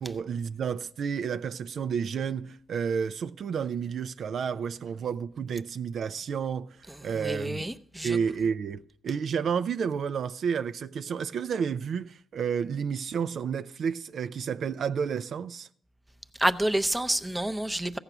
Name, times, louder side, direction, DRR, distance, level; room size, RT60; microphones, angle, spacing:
voice 1, 0.0-7.7 8.0-15.7, right 7 dB, 60° right, 0.4 m, -31 dB
voice 2, 7.2-8.2 16.4-18.0, right 1 dB, 5° right, 0.6 m, -28 dB
15.0 x 7.9 x 6.0 m
cardioid pair, 90°, 0 cm